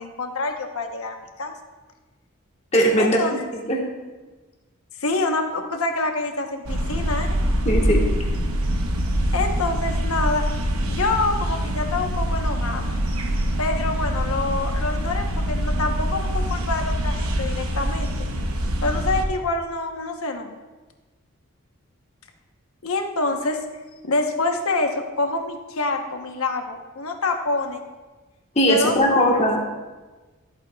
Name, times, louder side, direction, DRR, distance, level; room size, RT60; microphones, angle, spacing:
voice 1, 0.0-1.5 3.0-3.4 5.0-7.3 9.3-10.4 10.9-13.0 13.6-18.1 18.8-20.6 22.8-23.6 24.0-27.8 28.6-29.4, left 3 dB, 80° left, 4 dB, 1.0 m, -26 dB
voice 2, 2.7-3.2 3.5-3.8 7.6-8.1 28.5-29.7, equal, 30° left, -1 dB, 1.4 m, -19 dB
sound 1, 6.7-19.2, equal, 80° right, 1.0 m, -24 dB
13.5 x 8.1 x 2.3 m, 1.2 s
head